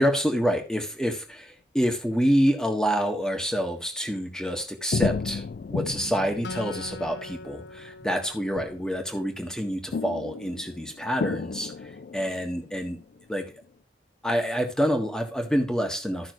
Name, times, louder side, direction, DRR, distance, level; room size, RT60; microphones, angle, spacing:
voice 1, 0.0-5.4 5.7-13.0 13.3-13.4 14.2-16.3, equal, 5° left, 3 dB, 1.6 m, -27 dB
sound 1, 4.9-9.1 9.9-13.3 13.6-13.7, left 4 dB, 55° left, 0.3 m, -33 dB
Acoustic guitar, 6.4-9.9, left 3 dB, 80° left, 0.8 m, -42 dB
14.0 x 6.0 x 3.1 m, 0.34 s
head